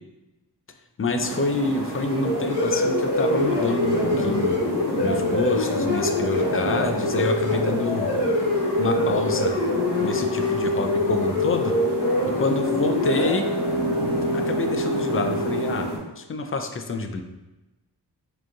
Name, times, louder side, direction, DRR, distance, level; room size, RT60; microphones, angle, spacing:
voice 1, 1.0-4.6 5.0-8.1 8.8-9.6 10.0-11.7 12.2-13.5 14.3-15.9 16.2-17.2, left 3 dB, 30° left, 6 dB, 0.5 m, -27 dB
sound 1, 1.2-16.0, right 2 dB, 90° right, 1.0 m, -32 dB
sound 2, 2.0-15.7, left 1 dB, 65° left, 1.2 m, -24 dB
4.8 x 3.1 x 2.4 m, 1.0 s
cardioid pair, 45°, 42 cm